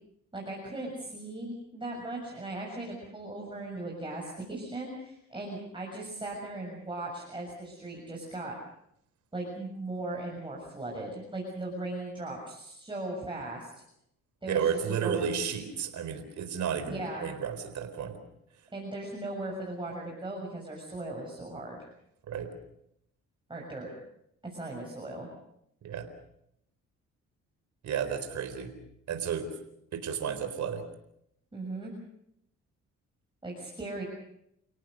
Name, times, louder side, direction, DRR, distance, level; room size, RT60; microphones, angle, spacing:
voice 1, 0.3-8.5 9.3-13.7 14.4-15.2 16.9-17.3 18.7-21.9 23.5-23.9 24.4-25.3 31.5-31.9 33.4-34.0, right 2 dB, 15° right, -2 dB, 6.8 m, -38 dB
voice 2, 14.5-18.2 22.3-22.5 25.8-26.1 27.8-28.7 29.1-29.5 29.9-30.8, right 7 dB, 70° right, 8 dB, 4.2 m, -32 dB
30.0 x 18.0 x 6.6 m, 0.75 s
cardioid pair, 90°, 30 cm